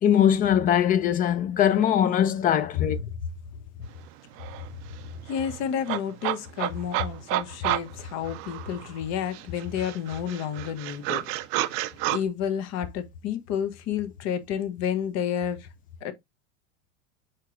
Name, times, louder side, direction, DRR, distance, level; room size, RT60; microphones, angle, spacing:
voice 1, 0.0-3.0, left 9 dB, 20° left, 0.4 m, -21 dB
sound 1, 4.0-4.1 4.4-9.0 9.3-12.2, right 16 dB, 35° right, 0.4 m, -31 dB
voice 2, 5.2-11.3 11.7-11.8 12.1-15.7 16.0-16.1, left 8 dB, 40° left, 0.9 m, -30 dB
4.5 x 4.5 x 2.4 m
hypercardioid pair, 100°, 38 cm